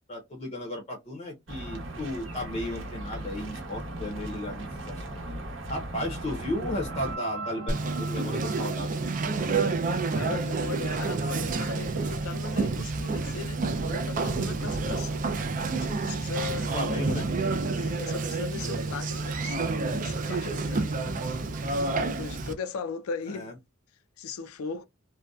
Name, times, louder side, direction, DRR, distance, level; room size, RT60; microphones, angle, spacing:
voice 1, 0.1-5.0 5.7-9.0 16.7-17.3 23.3-23.5, left 1 dB, 30° left, 0.6 m, -34 dB
sound 1, 1.5-7.2, right 1 dB, 60° right, 0.9 m, -37 dB
sound 2, 5.3-10.4, right 3 dB, 90° right, 0.7 m, -43 dB
Conversation, 7.7-22.5, right 3 dB, 40° right, 0.3 m, -29 dB
voice 2, 10.1-15.3 15.8-16.7 17.8-21.3 22.0-23.5 24.2-24.9, left 5 dB, 80° left, 0.4 m, -38 dB
2.6 x 2.1 x 2.2 m
head